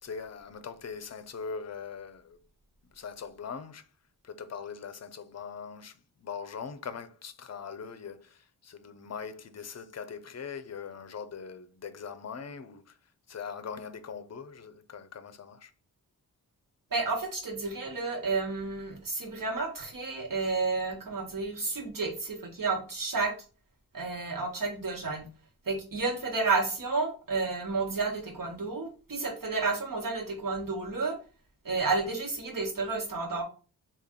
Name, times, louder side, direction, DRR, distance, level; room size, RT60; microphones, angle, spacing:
voice 1, 0.0-2.4 2.9-3.9 4.2-13.0 13.3-15.7, left 6 dB, 40° left, 0.6 m, -41 dB
voice 2, 16.9-23.3 23.9-25.2 25.6-31.1 31.6-33.4, right 3 dB, 55° right, 1.4 m, -31 dB
3.4 x 2.5 x 3.7 m
cardioid pair, 55°, 40 cm